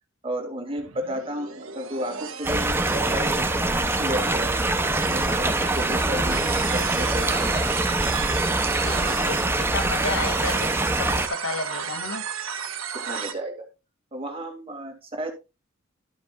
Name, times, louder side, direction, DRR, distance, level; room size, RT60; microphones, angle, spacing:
voice 1, 0.2-4.5 5.0-7.7 9.0-9.3 12.9-13.7 14.1-15.3, right 1 dB, 25° right, 2.4 m, -33 dB
sound 1, 0.8-13.3, right 7 dB, 90° right, 1.5 m, -34 dB
sound 2, 2.4-11.3, right 2 dB, 10° right, 0.7 m, -24 dB
voice 2, 8.8-10.7 11.0-12.3, left 3 dB, 90° left, 2.2 m, -32 dB
12.5 x 8.1 x 2.4 m
head